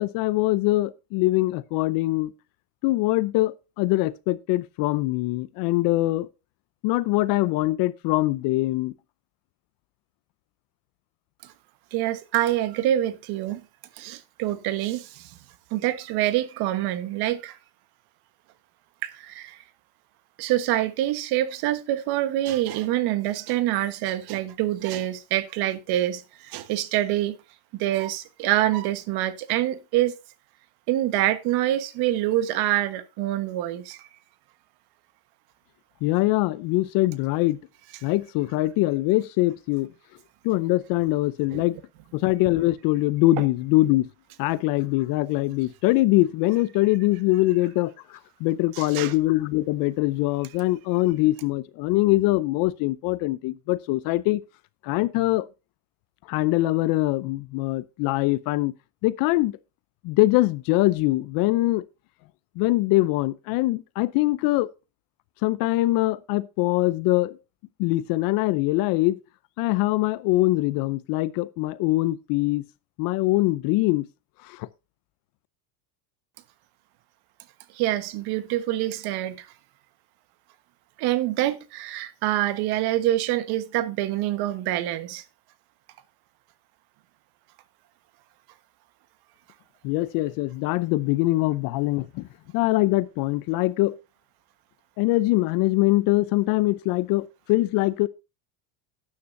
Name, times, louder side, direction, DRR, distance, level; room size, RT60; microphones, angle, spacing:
voice 1, 0.0-2.3 2.8-6.3 6.8-8.9 36.0-37.6 38.0-39.9 40.4-41.8 42.1-44.1 44.4-54.4 54.8-55.5 56.3-58.7 59.0-59.6 60.0-61.8 62.6-64.7 65.4-67.4 67.8-69.2 69.6-72.6 73.0-74.1 74.4-74.7 89.8-92.3 92.5-94.0 95.0-98.1, left 18 dB, 45° left, 0.6 m, -23 dB
voice 2, 11.9-13.6 14.0-15.3 15.7-17.6 19.0-19.6 20.4-27.4 27.7-30.1 30.9-34.0 41.5-41.6 43.4-43.5 48.7-49.1 77.7-79.5 81.0-85.2, right 14 dB, 50° right, 1.3 m, -26 dB
12.5 x 9.8 x 2.6 m
supercardioid pair, 140°, 49 cm